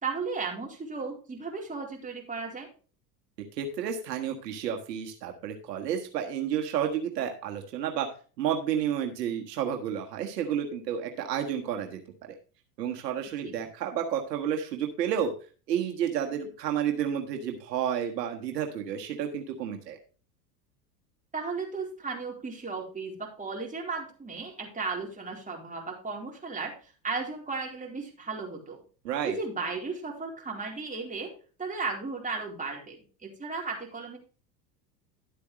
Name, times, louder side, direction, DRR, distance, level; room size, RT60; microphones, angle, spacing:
voice 1, 0.0-2.7 13.4-13.6 21.3-26.7 27.0-28.8 29.2-31.3 31.6-34.2, right 4 dB, 15° right, 0 dB, 4.1 m, -35 dB
voice 2, 3.6-8.1 8.4-12.0 12.8-15.3 15.7-20.0 29.0-29.4, right 9 dB, 75° right, 3 dB, 1.6 m, -31 dB
12.0 x 8.3 x 3.1 m, 0.37 s
hypercardioid pair, 85°, 49 cm